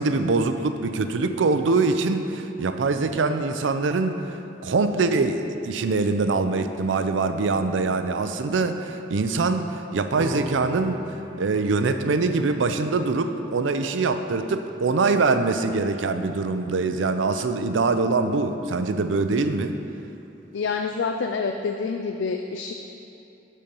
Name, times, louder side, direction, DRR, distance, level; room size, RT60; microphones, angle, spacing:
voice 1, 0.0-4.2 4.6-11.0 11.4-19.8, right 3 dB, 80° right, 8 dB, 0.5 m, -23 dB
sound 1, 10.2-16.9, equal, 20° right, 0.3 m, -41 dB
voice 2, 20.5-22.7, left 5 dB, 80° left, 5 dB, 0.4 m, -27 dB
11.5 x 4.3 x 5.4 m, 2.9 s
head